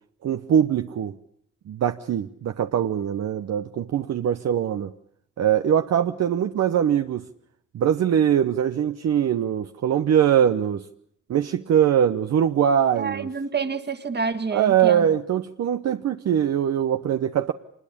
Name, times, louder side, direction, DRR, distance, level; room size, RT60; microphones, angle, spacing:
voice 1, 0.2-1.2 1.7-4.9 5.4-7.3 7.7-10.8 11.3-13.3 14.5-17.5, right 9 dB, 60° right, 7 dB, 1.0 m, -22 dB
voice 2, 13.0-15.1, right 5 dB, 35° right, 9 dB, 1.9 m, -28 dB
25.5 x 21.0 x 8.6 m, 0.67 s
cardioid pair, 90°, 30 cm